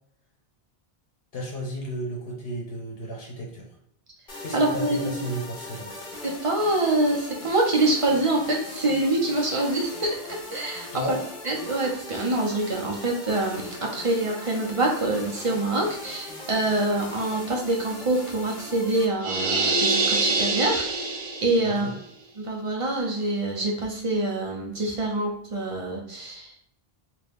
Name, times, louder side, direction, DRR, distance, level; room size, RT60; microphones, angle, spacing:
voice 1, 1.3-3.7 4.4-5.9 10.9-11.2 21.6-22.0, equal, 70° left, -2 dB, 1.0 m, -33 dB
sound 1, 4.3-19.0, left 2 dB, 55° left, 1.1 m, -40 dB
voice 2, 4.5-5.1 6.2-11.2 11.4-21.9 22.4-26.8, right 2 dB, 35° right, -1 dB, 0.7 m, -25 dB
sound 2, 19.2-21.8, right 3 dB, 85° right, 0.9 m, -25 dB
2.9 x 2.5 x 3.4 m, 0.73 s
omnidirectional pair, 1.0 m